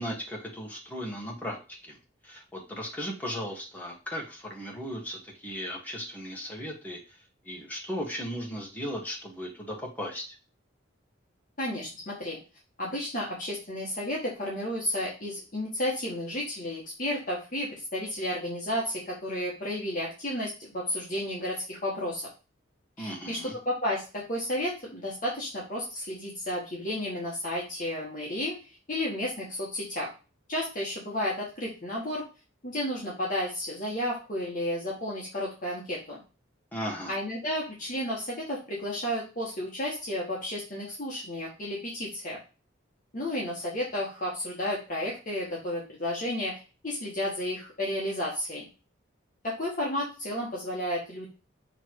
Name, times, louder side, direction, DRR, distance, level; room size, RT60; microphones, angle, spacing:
voice 1, 0.0-1.6 1.8-2.0 2.2-7.2 7.4-10.4 23.0-23.5 36.7-37.2, equal, 10° left, -1 dB, 1.6 m, -36 dB
voice 2, 11.6-12.4 12.8-22.3 23.0-30.1 30.5-32.2 32.6-36.2 37.1-42.4 43.1-48.6 49.4-51.3, left 1 dB, 40° left, -4 dB, 1.5 m, -32 dB
6.7 x 3.3 x 4.7 m, 0.33 s
head